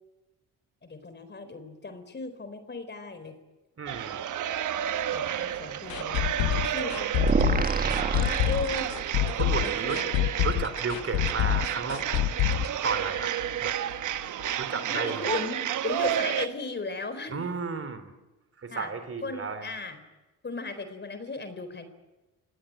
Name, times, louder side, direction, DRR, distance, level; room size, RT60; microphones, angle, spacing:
voice 1, 0.8-3.4 5.1-7.7 8.2-8.9 9.6-10.3 14.9-17.5 18.7-18.9 19.2-20.0 20.4-21.9, left 3 dB, 30° left, 10 dB, 4.2 m, -36 dB
voice 2, 3.8-4.3 9.3-10.0 10.4-12.0 12.8-13.3 13.6-13.8 14.6-15.3 17.3-18.1 18.6-19.8, right 4 dB, 40° right, 11 dB, 3.3 m, -33 dB
sound 1, 3.9-16.5, right 10 dB, 65° right, 1.2 m, -31 dB
sound 2, 5.9-13.6 13.9-14.0 14.4-14.5, left 13 dB, 80° left, 1.0 m, -27 dB
sound 3, 7.2-9.3, right 4 dB, 25° right, 1.6 m, -27 dB
27.5 x 18.0 x 9.2 m, 1.1 s
supercardioid pair, 65°, 33 cm